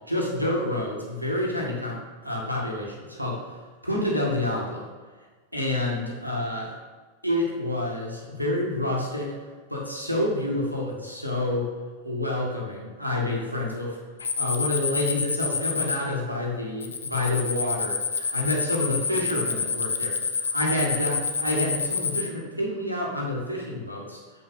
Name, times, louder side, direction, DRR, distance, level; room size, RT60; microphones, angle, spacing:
voice 1, 0.1-3.4 3.8-4.9 5.5-6.7 7.2-9.3 9.7-11.7 12.0-14.0 14.4-24.2, left 1 dB, 90° right, -3 dB, 1.6 m, -28 dB
sound 1, 14.2-16.0 16.8-22.3, left 5 dB, 70° left, 0.5 m, -28 dB
7.5 x 5.5 x 4.1 m, 1.4 s
figure-of-eight pair, 90°, 0 cm